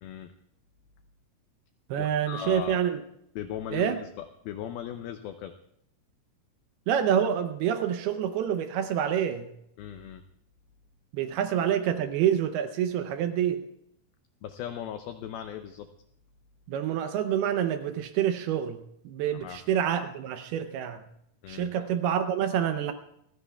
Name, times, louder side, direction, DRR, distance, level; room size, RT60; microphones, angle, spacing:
voice 1, 0.0-0.3 2.0-2.8 3.4-5.5 9.8-10.2 14.4-15.9 19.3-19.6 21.4-21.9, left 9 dB, 85° left, 8 dB, 2.1 m, -38 dB
voice 2, 1.9-3.0 3.7-4.0 6.9-9.5 11.1-13.7 16.7-21.1 21.5-22.9, right 9 dB, 80° right, 8 dB, 2.4 m, -27 dB
29.0 x 15.5 x 2.3 m, 0.76 s
omnidirectional pair, 5.1 m